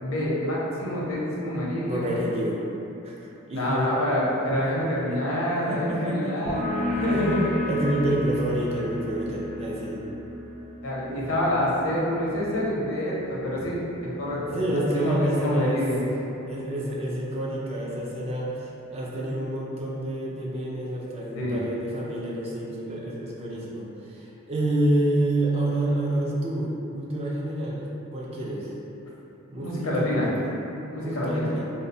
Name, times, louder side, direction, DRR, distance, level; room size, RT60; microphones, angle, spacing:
voice 1, 0.0-2.1 3.5-6.6 7.0-7.5 10.8-16.0 21.4-21.6 29.6-30.3 30.9-31.5, left 1 dB, 90° left, -5 dB, 0.6 m, -27 dB
voice 2, 1.8-2.6 3.0-3.9 5.1-5.2 5.6-6.7 6.9-7.0 7.7-10.0 14.5-15.8 16.5-27.8 28.1-28.7 29.5-30.5 31.0-31.7, right 1 dB, 30° right, -4 dB, 0.4 m, -28 dB
sound 1, 6.5-13.7, left 1 dB, 35° left, 0.4 m, -33 dB
2.7 x 2.1 x 2.6 m, 2.9 s
head